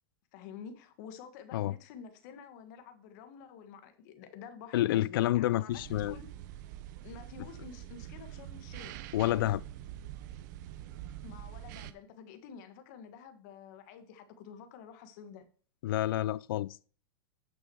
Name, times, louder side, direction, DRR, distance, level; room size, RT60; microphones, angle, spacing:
voice 1, 0.3-6.3 7.0-9.5 11.2-15.5, left 7 dB, 50° left, 1.5 m, -49 dB
voice 2, 4.7-6.2 9.1-9.6 15.8-16.9, left 14 dB, 70° left, 0.4 m, -29 dB
sound 1, 5.7-11.9, right 12 dB, 50° right, 0.7 m, -45 dB
9.1 x 6.2 x 4.7 m
hypercardioid pair, 140°, 12 cm